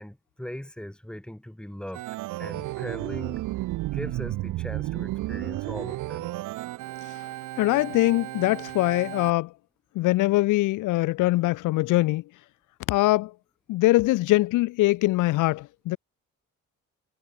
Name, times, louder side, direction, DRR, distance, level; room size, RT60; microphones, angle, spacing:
voice 1, 0.0-2.0 2.4-3.4 3.9-6.3, equal, 5° left, 2.6 m, -39 dB
Organ, 1.9-9.3, right 17 dB, 90° right, 1.0 m, -33 dB
voice 2, 7.6-9.5 9.9-12.2 12.9-13.3 13.7-16.0, left 19 dB, 85° left, 0.6 m, -22 dB
cardioid pair, 90°, 30 cm